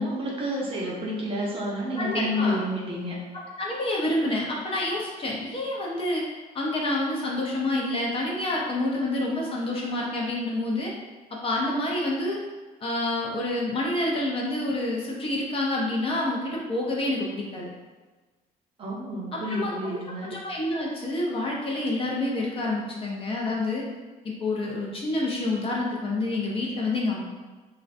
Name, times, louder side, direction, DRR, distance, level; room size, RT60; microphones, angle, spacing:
voice 1, 0.0-3.2 18.8-20.3, equal, 30° right, -4 dB, 0.6 m, -29 dB
voice 2, 2.0-2.6 3.6-6.2 6.5-10.9 11.4-12.4 12.8-17.7 19.3-23.8 24.2-27.2, left 2 dB, 35° left, -3 dB, 0.5 m, -28 dB
2.5 x 2.1 x 2.4 m, 1.3 s
cardioid pair, 110°, 17 cm